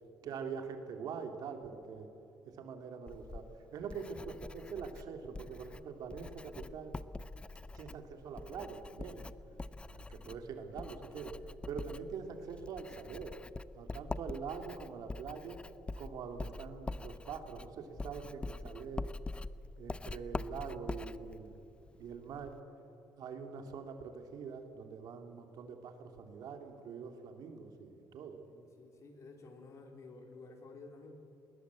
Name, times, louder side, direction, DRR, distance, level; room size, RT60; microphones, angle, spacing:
voice 1, 0.2-2.1 2.4-3.5 3.7-6.9 7.7-9.2 9.8-11.3 11.6-13.4 13.7-15.6 16.0-19.1 19.8-21.6 22.0-22.6 23.2-28.4, right 6 dB, 65° right, 5 dB, 2.7 m, -44 dB
Writing, 3.1-22.6, left 3 dB, 15° left, 0.5 m, -45 dB
voice 2, 28.5-31.2, left 3 dB, 45° left, 4 dB, 3.3 m, -53 dB
20.0 x 19.0 x 8.3 m, 2.8 s
cardioid pair, 125°, 7 cm